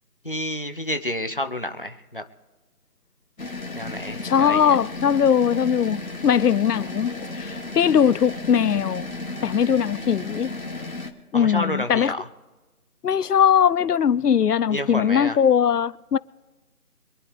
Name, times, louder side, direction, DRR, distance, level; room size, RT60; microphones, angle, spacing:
voice 1, 0.2-2.2 3.8-4.8 11.3-12.3 14.7-15.4, left 1 dB, 35° left, 0.8 m, -29 dB
sound 1, 3.4-11.1, left 2 dB, 65° left, 2.2 m, -34 dB
voice 2, 4.2-7.1 7.4-9.1 9.4-10.5 11.3-12.1 13.0-16.2, left 8 dB, 80° left, 0.6 m, -20 dB
25.5 x 10.5 x 3.3 m
figure-of-eight pair, 175°, 46 cm